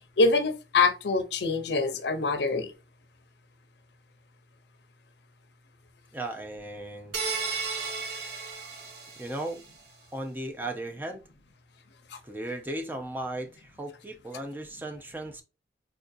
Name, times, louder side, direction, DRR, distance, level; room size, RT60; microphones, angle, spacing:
voice 1, 0.2-2.7 12.1-12.2, left 3 dB, 80° left, 0.6 m, -25 dB
voice 2, 6.1-7.2 9.2-9.6 10.1-11.3 12.2-15.4, right 1 dB, 10° right, 0.4 m, -36 dB
sound 1, 7.1-9.6, right 4 dB, 75° right, 0.9 m, -34 dB
4.3 x 2.6 x 2.4 m
head